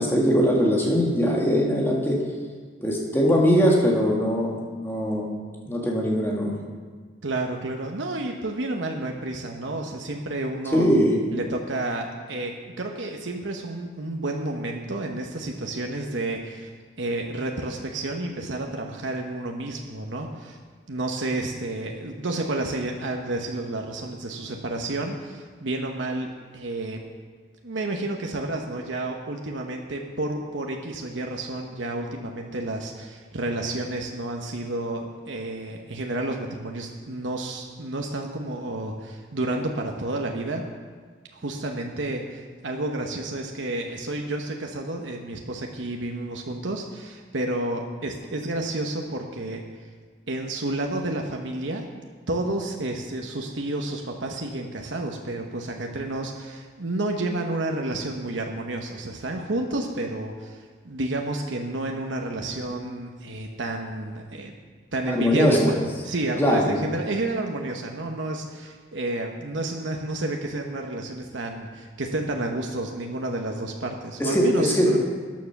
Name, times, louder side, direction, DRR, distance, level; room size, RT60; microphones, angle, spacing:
voice 1, 0.0-2.2 2.8-5.3 5.6-6.6 10.7-11.2 65.1-65.7 66.4-66.8 74.2-75.0, equal, 10° left, -2 dB, 2.1 m, -21 dB
voice 2, 7.2-10.9 11.3-16.7 17.0-20.6 20.9-27.0 27.6-40.6 41.3-49.6 50.3-51.9 52.3-64.5 64.9-65.6 66.0-75.0, right 2 dB, 90° right, 2 dB, 1.1 m, -30 dB
13.5 x 9.5 x 5.9 m, 1.5 s
head